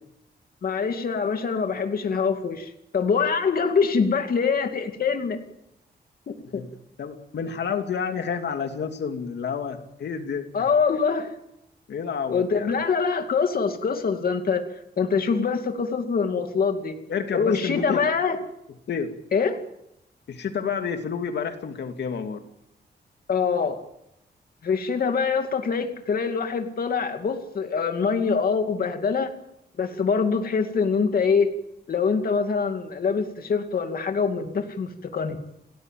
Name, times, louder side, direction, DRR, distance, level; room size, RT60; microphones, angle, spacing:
voice 1, 0.6-5.4 6.3-6.6 10.5-11.3 12.3-14.6 15.0-17.0 17.3-18.4 19.3-19.6 23.3-23.8 24.6-29.3 29.8-31.5 31.9-35.4, left 5 dB, 55° left, 6 dB, 2.4 m, -24 dB
voice 2, 7.0-10.5 11.9-12.7 17.1-18.0 18.9-19.1 20.3-22.4, left 6 dB, 75° left, 6 dB, 2.6 m, -29 dB
29.0 x 18.5 x 9.2 m, 0.82 s
wide cardioid pair, 155°, 18 cm